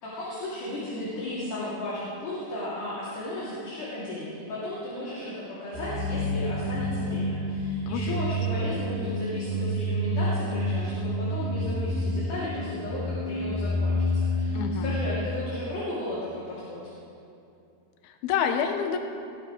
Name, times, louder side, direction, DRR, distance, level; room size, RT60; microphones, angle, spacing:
voice 1, 0.0-16.9, left 1 dB, 55° left, -9 dB, 4.3 m, -35 dB
sound 1, 5.7-15.1, left 1 dB, 80° right, 5.1 m, -29 dB
voice 2, 7.9-8.2 14.5-15.0 18.0-19.0, left 7 dB, 75° left, 5 dB, 2.7 m, -28 dB
20.0 x 16.5 x 3.3 m, 2.6 s
omnidirectional pair, 4.7 m